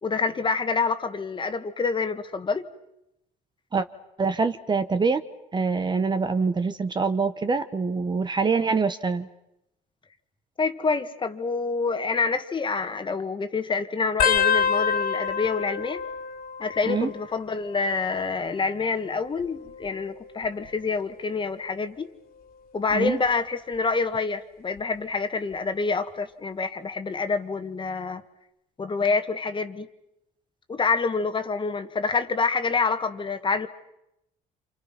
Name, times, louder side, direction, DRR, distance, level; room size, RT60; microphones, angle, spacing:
voice 1, 0.0-2.7 10.6-16.0 16.6-22.1 22.7-28.2 28.8-29.9 30.7-33.7, left 4 dB, 30° left, 8 dB, 1.8 m, -27 dB
voice 2, 4.2-5.2 5.5-9.3 16.9-17.1 22.9-23.2, right 4 dB, 25° right, 10 dB, 1.2 m, -25 dB
sound 1, 14.2-17.4 17.7-18.3 19.2-20.7 21.3-21.7 22.9-23.3 24.8-24.9, left 7 dB, 65° left, 2.8 m, -28 dB
30.0 x 27.5 x 6.0 m, 0.85 s
cardioid pair, 110°, 17 cm